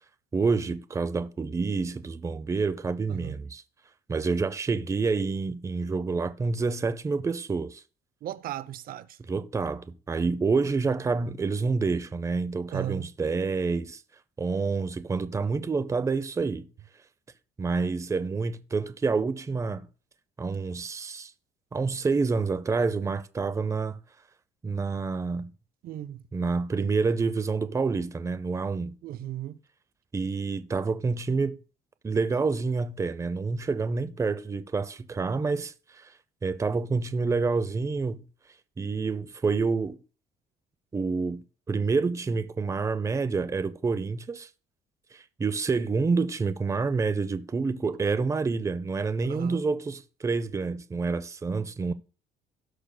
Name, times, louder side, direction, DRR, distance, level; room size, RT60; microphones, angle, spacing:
voice 1, 0.3-3.6 4.1-7.8 9.2-14.0 14.4-16.7 17.6-19.9 20.4-21.3 21.7-24.0 24.6-25.5 26.3-28.9 30.1-31.6 32.0-36.1 36.4-38.2 38.8-40.0 40.9-44.5 45.1-51.9, right 4 dB, 20° right, 0.6 m, -28 dB
voice 2, 8.2-9.2 12.7-13.1 25.8-26.2 29.0-29.6 49.2-49.6, right 12 dB, 60° right, 0.6 m, -36 dB
17.0 x 6.3 x 2.2 m
cardioid pair, 110°, 17 cm